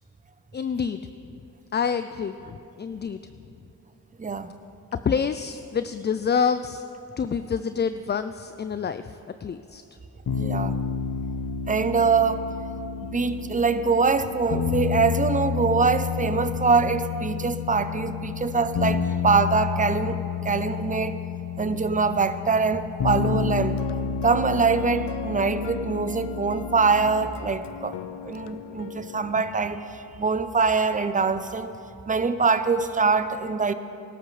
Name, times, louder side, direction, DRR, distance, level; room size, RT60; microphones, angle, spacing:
voice 1, 0.5-1.0 1.7-3.2 5.0-6.8 7.2-9.8, left 6 dB, 30° left, 11 dB, 0.3 m, -27 dB
voice 2, 4.2-4.5 10.4-10.8 11.7-12.5 13.0-20.2 20.4-21.2 21.6-23.8 24.2-28.0 28.2-31.7 32.1-33.7, right 4 dB, 20° right, 11 dB, 0.7 m, -23 dB
sound 1, 10.3-27.3, left 7 dB, 70° left, 1.0 m, -30 dB
sound 2, 23.6-29.4, left 9 dB, 85° left, 0.5 m, -40 dB
20.0 x 12.5 x 3.3 m, 2.7 s
cardioid pair, 55°, 40 cm